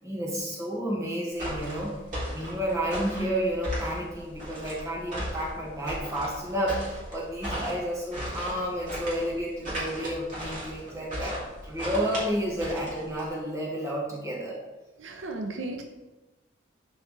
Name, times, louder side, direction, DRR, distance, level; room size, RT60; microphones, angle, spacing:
voice 1, 0.0-2.0 2.3-14.6, equal, 15° right, -4 dB, 1.8 m, -31 dB
sound 1, 1.4-13.3, equal, 40° right, 2.8 m, -36 dB
voice 2, 15.0-15.9, right 2 dB, 75° right, 4 dB, 0.7 m, -35 dB
11.5 x 4.8 x 3.3 m, 1.1 s
head